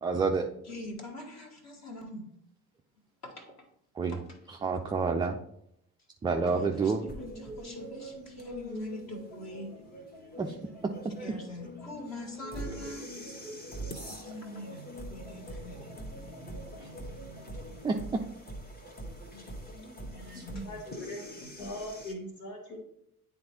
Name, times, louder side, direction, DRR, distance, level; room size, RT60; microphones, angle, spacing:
voice 1, 0.0-0.5 4.0-4.2 4.6-5.4 6.2-7.0 10.4-10.5 16.8-16.9 17.8-18.0 20.3-20.4, right 4 dB, 10° right, 3 dB, 0.3 m, -28 dB
voice 2, 0.6-2.3 3.2-3.7 4.1-4.4 6.5-9.8 11.2-13.2 14.1-15.9 19.7-20.8 21.4-21.5, left 1 dB, 35° left, 2 dB, 1.6 m, -44 dB
sound 1, 6.7-17.8, left 1 dB, 90° left, 1.2 m, -47 dB
sound 2, 7.1-22.1, right 1 dB, 20° left, 1.2 m, -45 dB
voice 3, 20.1-21.2 21.6-22.8, equal, 65° left, -4 dB, 1.7 m, -41 dB
10.0 x 3.5 x 2.9 m, 0.75 s
figure-of-eight pair, 50°, 45 cm